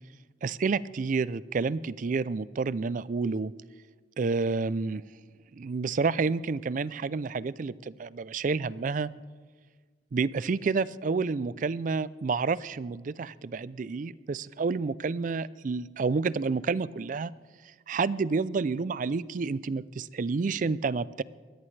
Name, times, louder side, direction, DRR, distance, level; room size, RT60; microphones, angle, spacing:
voice 1, 0.4-3.5 4.2-5.0 5.5-9.1 10.1-17.3 17.9-21.2, right 4 dB, 45° right, 19 dB, 0.4 m, -29 dB
22.0 x 17.0 x 3.3 m, 1.4 s
head